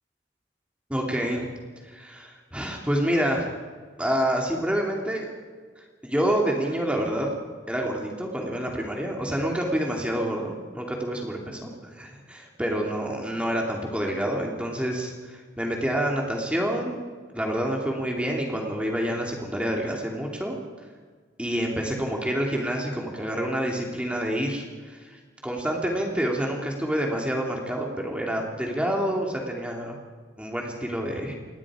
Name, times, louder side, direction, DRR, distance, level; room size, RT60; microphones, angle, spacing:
voice 1, 0.9-1.5 1.8-3.5 4.0-5.3 5.8-7.3 7.7-17.0 17.3-20.6 21.4-30.0 30.4-31.3, equal, 5° right, 0 dB, 2.7 m, -28 dB
27.5 x 21.5 x 5.0 m, 1.5 s
head